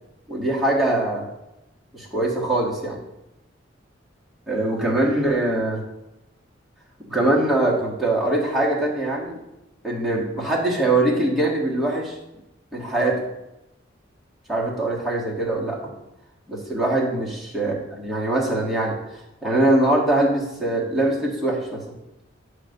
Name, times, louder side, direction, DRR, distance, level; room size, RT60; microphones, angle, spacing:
voice 1, 0.3-1.3 1.9-3.0 4.5-5.8 7.1-9.4 9.8-12.2 12.7-13.2 14.5-15.9 16.5-19.0 19.4-21.8, right 1 dB, ahead, -5 dB, 1.6 m, -22 dB
8.7 x 3.2 x 6.5 m, 0.92 s
head